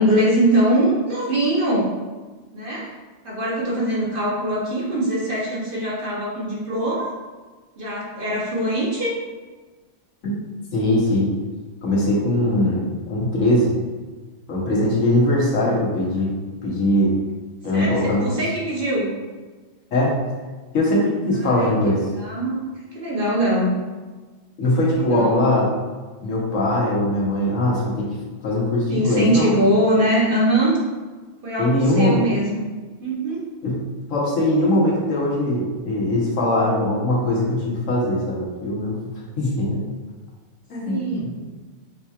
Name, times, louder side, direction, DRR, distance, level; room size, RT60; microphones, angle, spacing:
voice 1, 0.0-1.9 2.5-3.0 3.2-7.1 7.8-9.1 17.7-19.1 21.3-21.7 22.2-22.6 22.9-23.7 24.9-25.4 28.9-30.8 31.4-32.6 33.0-33.4 40.8-41.4, right 1 dB, 50° right, -5 dB, 1.1 m, -22 dB
voice 2, 10.7-11.3 11.8-13.7 14.5-16.3 16.6-17.1 17.6-18.3 19.9-20.1 20.7-22.1 24.6-25.7 26.2-28.1 28.4-29.5 31.6-32.3 33.6-33.8 34.1-39.0 39.4-39.8 40.7-41.6, left 1 dB, 85° left, -5 dB, 1.4 m, -21 dB
5.4 x 2.8 x 2.4 m, 1.3 s
omnidirectional pair, 1.3 m